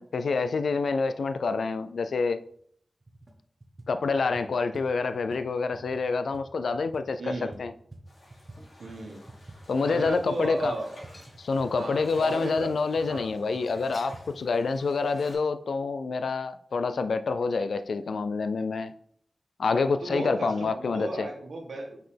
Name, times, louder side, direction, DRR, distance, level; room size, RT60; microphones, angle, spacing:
voice 1, 0.0-2.4 3.9-7.7 9.7-10.7 11.4-18.9 19.6-21.3, left 4 dB, 90° left, 0.4 m, -27 dB
sound 1, 2.5-2.6 3.0-3.3 3.6-8.6 8.9-14.3, right 2 dB, 30° right, 1.1 m, -49 dB
voice 2, 7.2-7.5 8.8-9.2 9.8-10.9 11.7-12.8 13.1-13.4 20.0-22.0, right 2 dB, 80° right, 1.4 m, -35 dB
sound 2, 8.1-15.3, left 1 dB, 70° left, 2.9 m, -52 dB
sound 3, 8.5-9.1 9.7-9.8 11.0-11.7 12.1-12.2 13.7-14.3 14.7-14.8 15.2-15.3, left 1 dB, 20° left, 1.5 m, -54 dB
5.7 x 5.6 x 3.4 m
wide cardioid pair, 100°, 0 cm